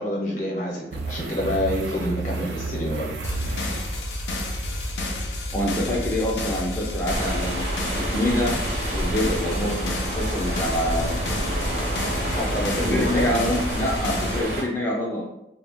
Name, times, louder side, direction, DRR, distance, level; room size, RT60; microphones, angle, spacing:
voice 1, 0.0-3.0 12.4-13.4, left 1 dB, 45° left, -3 dB, 0.8 m, -27 dB
sound 1, 0.9-4.9 6.6-6.7, right 3 dB, 80° right, 0.4 m, -32 dB
sound 2, 3.2-14.4, left 1 dB, 85° left, 0.5 m, -30 dB
voice 2, 5.5-7.7 7.9-11.2 11.5-11.6 12.9-15.3, left 1 dB, 10° left, -4 dB, 0.4 m, -26 dB
sound 3, 7.1-14.6, right 1 dB, 60° right, 0.7 m, -29 dB
2.2 x 2.1 x 3.4 m, 0.86 s
head